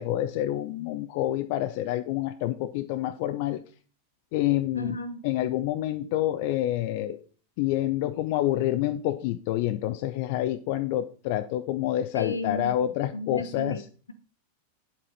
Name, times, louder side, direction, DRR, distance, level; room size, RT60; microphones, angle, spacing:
voice 1, 0.0-3.6 4.3-4.9 5.2-7.2 7.6-13.8, left 13 dB, 45° left, 9 dB, 0.6 m, -28 dB
voice 2, 4.7-5.2 12.1-12.9 13.1-14.1, left 3 dB, 75° left, 10 dB, 1.1 m, -33 dB
9.0 x 7.5 x 4.0 m, 0.39 s
figure-of-eight pair, 90°, 0 cm